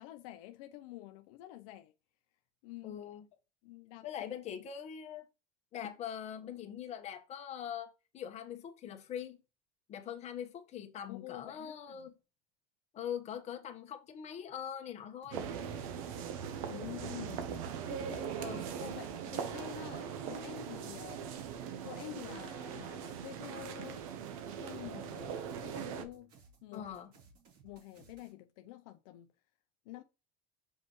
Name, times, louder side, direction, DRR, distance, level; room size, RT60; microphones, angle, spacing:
voice 1, 0.0-1.9 2.6-3.0 3.6-4.4 11.1-12.1 16.7-18.5 18.8-21.4 21.8-24.1 24.6-26.3 26.6-26.9 27.6-29.3 29.8-30.0, left 15 dB, 80° left, 0.7 m, -48 dB
voice 2, 2.8-3.2 4.0-5.3 5.7-9.4 9.9-12.1 12.9-15.5 18.3-18.7 26.7-27.1, left 9 dB, 40° left, 1.3 m, -42 dB
sound 1, 15.2-28.3, right 4 dB, 55° right, 3.5 m, -62 dB
sound 2, 15.3-26.0, right 8 dB, 85° right, 1.0 m, -40 dB
5.5 x 5.4 x 3.1 m
supercardioid pair, 125°, 17 cm